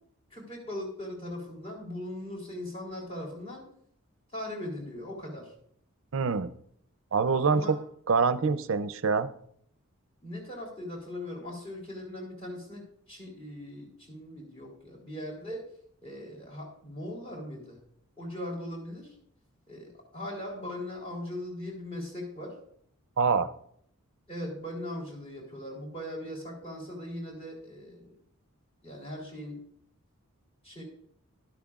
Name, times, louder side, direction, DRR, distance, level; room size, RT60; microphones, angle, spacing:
voice 1, 0.3-3.6 4.3-5.5 7.5-7.7 10.2-12.8 13.1-15.6 16.0-17.8 18.2-19.1 19.7-22.5 24.3-28.1 28.8-29.6 30.6-30.8, left 1 dB, 25° left, -2 dB, 3.4 m, -39 dB
voice 2, 6.1-6.5 7.1-7.8 8.1-9.3 23.2-23.5, right 5 dB, 60° right, 13 dB, 0.5 m, -25 dB
12.5 x 11.5 x 2.4 m, 0.68 s
head